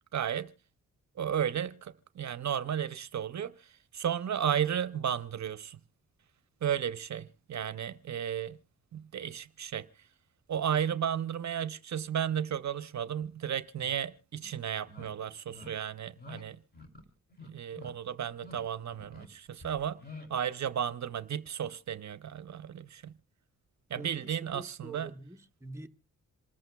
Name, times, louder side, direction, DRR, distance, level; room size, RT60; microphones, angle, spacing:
voice 1, 0.1-0.5 1.2-5.8 6.6-8.6 8.9-9.9 10.5-16.6 17.4-20.0 20.3-23.1 23.9-25.1, right 9 dB, 65° right, 0.6 m, -34 dB
sound 1, 13.8-13.9 14.4-14.6 14.9-15.1 15.5-15.7 16.2-16.4 16.7-17.0 17.3-17.9 18.3-18.6 18.9-19.3 19.6-20.3, left 3 dB, 30° left, 2.9 m, -48 dB
voice 2, 23.9-25.9, right 2 dB, 10° right, 0.8 m, -46 dB
27.0 x 14.0 x 2.2 m
cardioid pair, 80°, 31 cm